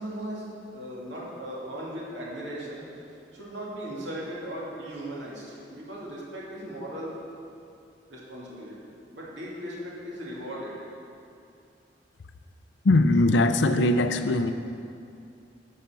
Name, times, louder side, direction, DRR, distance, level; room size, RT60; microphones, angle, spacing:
voice 1, 0.0-2.8 3.3-7.2 8.1-8.8 9.1-10.8, right 1 dB, 80° right, -5 dB, 2.5 m, -37 dB
voice 2, 12.8-14.5, left 2 dB, 80° left, 9 dB, 0.6 m, -21 dB
11.5 x 5.7 x 7.0 m, 2.5 s
head